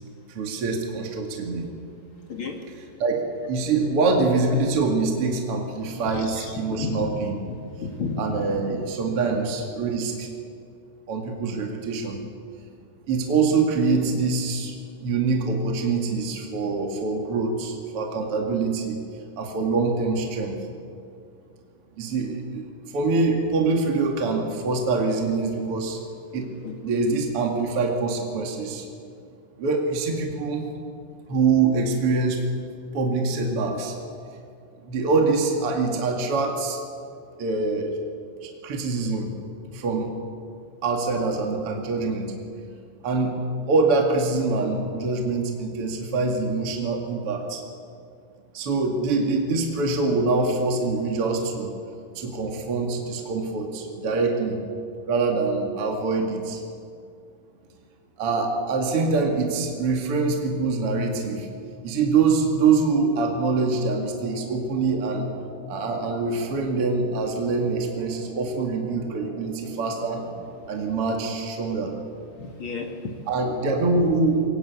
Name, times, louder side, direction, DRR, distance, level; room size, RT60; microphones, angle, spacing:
voice 1, 0.3-1.7 3.0-7.4 8.2-10.3 11.1-12.2 13.1-14.7 15.0-19.0 19.4-20.5 22.0-22.7 22.9-26.0 26.3-26.5 26.8-28.9 29.6-30.7 31.3-32.4 32.9-34.0 34.8-36.8 37.4-38.0 38.4-39.3 39.7-40.1 40.8-42.3 43.0-43.4 43.6-47.6 48.5-51.7 52.1-54.6 55.1-56.6 58.2-61.5 61.8-65.3 65.7-70.2 70.7-71.9 73.3-74.4, right 4 dB, 40° right, 1 dB, 2.6 m, -24 dB
voice 2, 6.0-7.0 7.8-8.2 8.5-8.6 26.6-26.7 72.4-73.2, left 4 dB, 45° left, 2 dB, 2.1 m, -32 dB
sound 1, 63.3-70.5, left 1 dB, 70° left, 8.9 m, -44 dB
22.5 x 19.5 x 8.4 m, 2.4 s
omnidirectional pair, 4.6 m